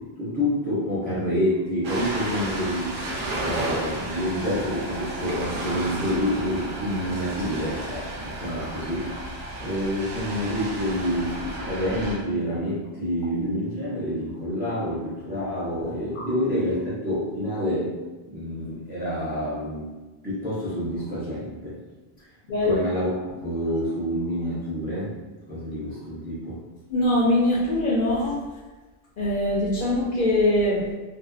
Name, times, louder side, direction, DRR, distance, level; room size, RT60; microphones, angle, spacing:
voice 1, 0.0-3.0 3.4-9.1 9.6-18.0 18.3-19.9 20.2-21.8 22.6-23.1 23.4-25.1 25.5-26.6, equal, 10° right, -8 dB, 0.6 m, -28 dB
Ocean, 1.8-12.2, right 1 dB, 60° right, 0.7 m, -32 dB
voice 2, 26.9-28.4 29.2-30.9, left 1 dB, 60° left, -6 dB, 0.7 m, -22 dB
2.6 x 2.1 x 2.3 m, 1.2 s
omnidirectional pair, 1.1 m